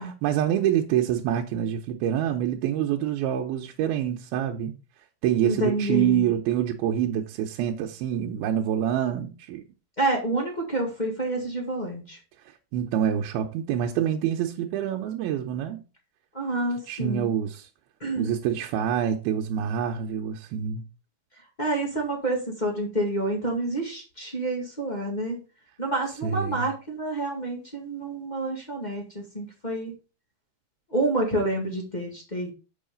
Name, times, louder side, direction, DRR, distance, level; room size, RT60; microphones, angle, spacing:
voice 1, 0.0-4.8 5.2-9.6 12.7-15.8 16.9-17.7 18.1-20.8 26.2-26.7, right 10 dB, 90° right, 2.6 m, -26 dB
voice 2, 5.4-6.3 10.0-12.2 16.3-17.3 18.0-18.3 21.6-25.4 25.8-29.9 30.9-32.5, right 2 dB, 25° left, 0.8 m, -28 dB
7.8 x 5.6 x 5.2 m
omnidirectional pair, 4.4 m